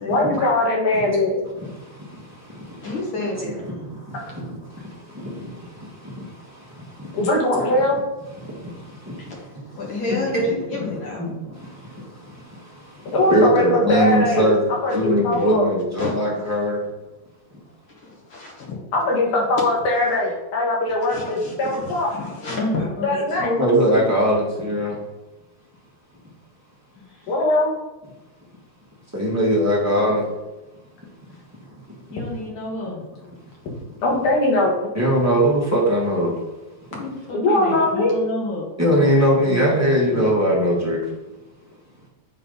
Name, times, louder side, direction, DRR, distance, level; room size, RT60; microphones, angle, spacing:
voice 1, 0.1-1.4 7.1-8.0 13.1-14.5 14.8-15.7 18.9-22.2 23.0-23.5 27.3-27.7 34.0-34.8 37.3-38.2, left 1 dB, 80° left, -2 dB, 3.3 m, -20 dB
voice 2, 1.6-2.9 3.8-7.2 8.4-9.4 10.3-10.8 11.2-16.8 23.6-25.0 29.1-30.3 34.9-36.4 38.8-41.0, equal, 10° right, -5 dB, 0.7 m, -22 dB
voice 3, 2.8-3.7 9.2-9.4 9.7-11.3 14.9-15.0 15.3-15.5 16.0-16.2 17.9-18.7 19.1-19.5 21.1-24.1 27.0-27.3 32.1-33.0 37.0-38.7 39.0-39.6 40.1-40.5, left 2 dB, 45° left, -3 dB, 2.4 m, -30 dB
9.8 x 4.0 x 4.0 m, 1.0 s
omnidirectional pair, 3.5 m